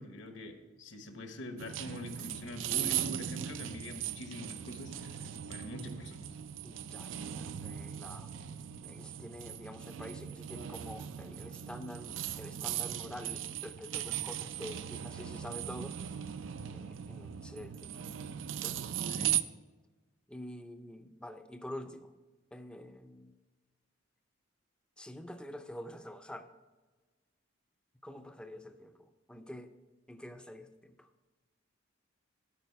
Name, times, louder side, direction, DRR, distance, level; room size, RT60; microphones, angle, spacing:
voice 1, 0.0-6.3 19.1-19.3, left 1 dB, 65° left, 6 dB, 1.2 m, -44 dB
sound 1, 1.6-19.4, right 10 dB, 70° right, 0.4 m, -38 dB
voice 2, 6.6-8.3 8.8-16.0 16.7-18.0 18.6-18.8 20.3-22.1 22.5-23.3 25.0-26.5 28.0-29.0 29.3-29.7 30.1-31.1, left 1 dB, 5° left, 7 dB, 0.5 m, -47 dB
12.5 x 4.9 x 4.6 m, 1.3 s
head